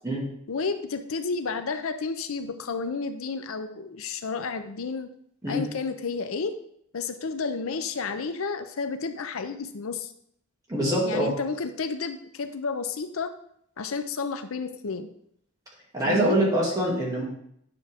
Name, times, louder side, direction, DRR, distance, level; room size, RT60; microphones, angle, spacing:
voice 1, 0.5-5.1 5.5-6.5 6.9-10.1 11.0-13.3 13.8-15.1 16.1-16.4, left 4 dB, 80° left, 9 dB, 0.6 m, -31 dB
voice 2, 10.7-11.3 15.9-17.2, right 1 dB, 15° right, -5 dB, 2.5 m, -24 dB
9.5 x 6.2 x 3.6 m, 0.70 s
head